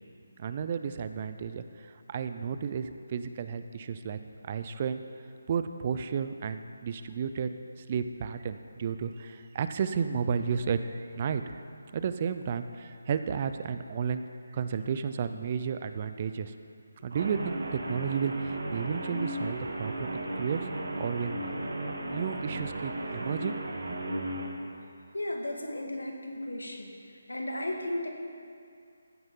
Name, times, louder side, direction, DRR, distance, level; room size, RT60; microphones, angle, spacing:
voice 1, 0.4-5.0 5.5-7.5 7.9-11.6 11.9-14.2 14.5-16.5 17.0-20.1 20.4-20.6 21.0-21.3 22.1-23.6, right 6 dB, 35° right, 10 dB, 0.5 m, -32 dB
Guitar, 17.1-24.5, right 1 dB, 65° right, 1.6 m, -35 dB
voice 2, 25.1-26.9 27.3-28.1, left 1 dB, 85° left, 2 dB, 1.9 m, -34 dB
15.0 x 9.7 x 3.8 m, 2.3 s
figure-of-eight pair, 155°, 0 cm